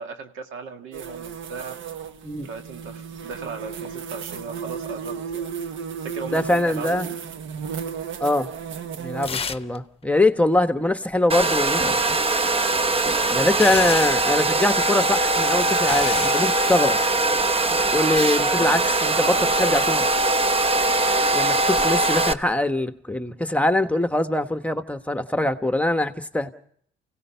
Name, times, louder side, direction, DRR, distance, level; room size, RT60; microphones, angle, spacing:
voice 1, 0.0-1.8 2.4-5.5 6.0-7.2 13.5-13.7 18.6-19.8 25.4-25.5, right 5 dB, 90° right, 2.0 m, -37 dB
sound 1, 0.9-9.3, right 7 dB, 75° right, 1.2 m, -34 dB
voice 2, 6.3-7.1 8.2-8.5 9.0-12.0 13.3-17.0 17.7-20.1 21.3-26.5, left 1 dB, 5° left, 1.2 m, -23 dB
sound 2, 9.2-9.8 10.0-10.1 12.5-14.3 15.2-16.4 17.2-17.5, left 5 dB, 30° left, 0.9 m, -31 dB
Domestic sounds home sounds, 11.3-22.3, right 2 dB, 30° right, 0.9 m, -21 dB
29.0 x 17.0 x 5.7 m
cardioid pair, 90°, 20 cm